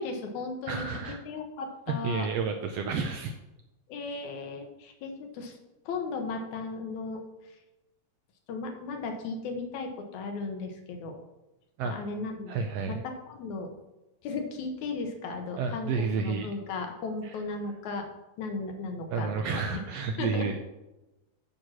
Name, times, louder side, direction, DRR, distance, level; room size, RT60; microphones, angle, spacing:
voice 1, 0.0-0.9 1.3-2.3 3.9-5.6 5.9-7.2 8.5-11.2 11.8-12.5 12.9-13.0 13.3-13.7 14.2-18.1 18.4-19.8 20.2-20.5, left 3 dB, 75° left, 4 dB, 2.4 m, -36 dB
voice 2, 0.7-1.2 1.9-3.3 11.8-12.0 12.5-13.0 15.6-16.5 17.2-17.4 19.1-20.6, right 5 dB, 75° right, 5 dB, 1.5 m, -30 dB
9.4 x 4.5 x 6.2 m, 1.0 s
omnidirectional pair, 3.4 m